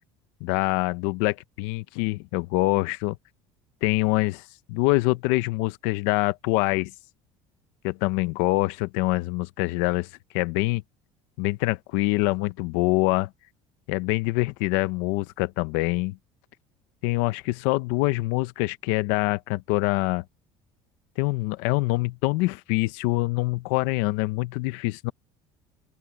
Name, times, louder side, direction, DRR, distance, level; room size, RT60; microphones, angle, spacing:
voice 1, 0.4-3.2 3.8-4.4 4.7-6.9 7.8-10.1 10.3-10.8 11.4-13.3 13.9-16.2 17.0-20.2 21.2-25.1, left 21 dB, 90° left, 0.7 m, -25 dB
open air
cardioid pair, 180°, 12 cm